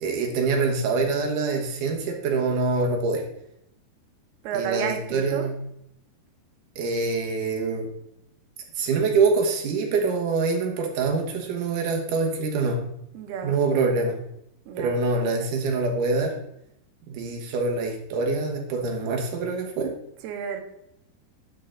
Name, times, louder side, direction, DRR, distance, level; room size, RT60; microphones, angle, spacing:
voice 1, 0.0-3.2 4.5-5.6 6.8-7.9 8.8-12.8 13.4-14.2 14.8-16.3 17.1-19.9, right 4 dB, 65° right, 2 dB, 2.5 m, -25 dB
voice 2, 4.4-5.5 13.1-13.6 14.7-14.9 20.2-20.6, right 7 dB, 80° right, 5 dB, 2.8 m, -31 dB
10.5 x 5.1 x 3.8 m, 0.76 s
omnidirectional pair, 4.5 m